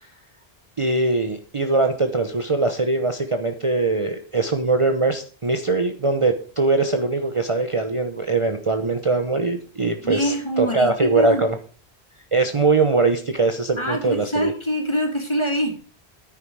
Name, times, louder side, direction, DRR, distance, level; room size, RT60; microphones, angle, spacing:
voice 1, 0.8-11.5 12.3-14.5, right 3 dB, 30° right, 6 dB, 0.9 m, -21 dB
voice 2, 10.0-11.4 13.8-15.8, equal, 25° left, 2 dB, 3.3 m, -24 dB
9.9 x 9.7 x 4.8 m, 0.39 s
omnidirectional pair, 1.1 m